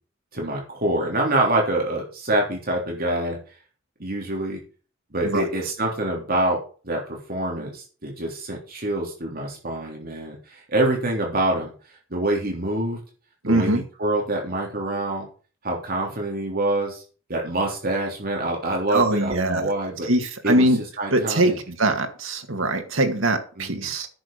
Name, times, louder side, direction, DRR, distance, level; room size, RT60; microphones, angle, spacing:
voice 1, 0.3-3.4 4.0-4.6 5.1-11.7 12.1-13.0 13.4-15.3 15.6-17.0 17.3-20.1 20.4-20.7 21.0-21.6 23.6-23.9, right 1 dB, 50° right, 0 dB, 3.4 m, -26 dB
voice 2, 13.4-13.8 18.9-19.7 20.0-20.8 21.1-24.1, right 1 dB, 85° right, 6 dB, 2.1 m, -22 dB
10.0 x 6.8 x 6.7 m, 0.38 s
head